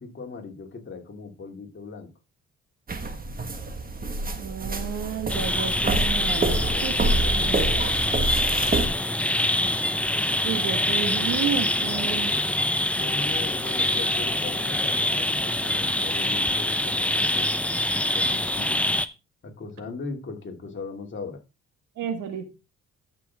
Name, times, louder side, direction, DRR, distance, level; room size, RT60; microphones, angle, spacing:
voice 1, 0.0-2.1 6.5-8.1 13.0-17.5 17.9-18.9 19.4-21.4, left 4 dB, 40° left, 2 dB, 2.7 m, -39 dB
sound 1, 2.9-8.9, right 2 dB, 30° right, 1.7 m, -27 dB
voice 2, 4.4-7.6 10.4-12.4 22.0-22.5, right 8 dB, 85° right, 8 dB, 1.8 m, -32 dB
sound 2, 5.3-19.1, left 1 dB, 5° left, 0.6 m, -25 dB
13.5 x 6.2 x 3.6 m, 0.28 s
cardioid pair, 90°, 30 cm